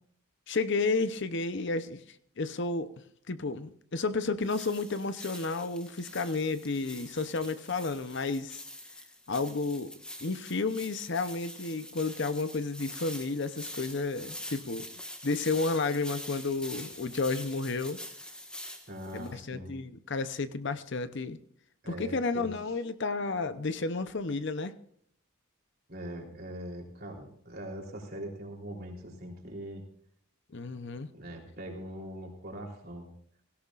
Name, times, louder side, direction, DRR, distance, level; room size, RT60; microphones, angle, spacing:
voice 1, 0.5-2.0 2.4-2.9 3.3-8.6 9.3-9.9 10.2-14.9 15.2-18.0 19.1-21.4 21.9-24.7 30.5-31.1, left 3 dB, 55° left, 12 dB, 0.7 m, -32 dB
sound 1, 4.4-19.3, left 1 dB, 5° left, 1.4 m, -45 dB
voice 2, 18.9-19.8 21.8-22.5 25.9-29.8 31.2-33.1, equal, 45° right, 0 dB, 3.5 m, -42 dB
17.5 x 17.0 x 2.5 m, 0.65 s
head